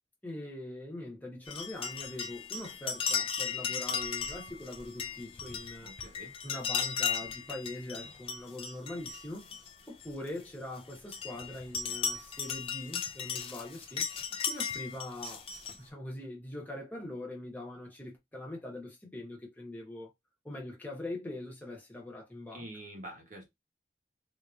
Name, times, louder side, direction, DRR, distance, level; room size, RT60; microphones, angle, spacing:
voice 1, 0.2-5.9 6.4-9.5 9.9-14.1 14.5-15.5 15.8-20.1 20.4-22.7, left 1 dB, 10° left, 1.1 m, -42 dB
sound 1, 1.5-10.3 10.8-15.8, left 7 dB, 30° left, 0.4 m, -36 dB
voice 2, 5.8-6.3 22.5-23.4, right 1 dB, 45° right, 1.2 m, -46 dB
3.5 x 2.9 x 2.4 m
head